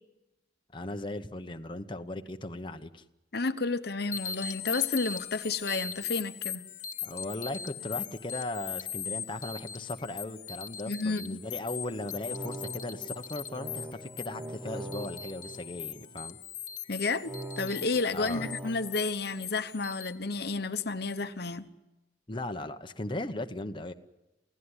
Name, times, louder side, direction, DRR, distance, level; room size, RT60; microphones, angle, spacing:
voice 1, 0.7-3.0 7.0-16.4 18.1-18.5 22.3-23.9, left 2 dB, 30° left, 6 dB, 1.0 m, -37 dB
voice 2, 3.3-6.6 10.9-11.4 16.9-21.7, left 3 dB, 65° left, 10 dB, 1.1 m, -31 dB
sound 1, 4.1-20.1, left 8 dB, 45° left, 1.3 m, -40 dB
sound 2, 12.0-16.3 17.2-19.0, right 2 dB, 15° right, 1.2 m, -43 dB
28.5 x 17.0 x 9.8 m, 1.0 s
head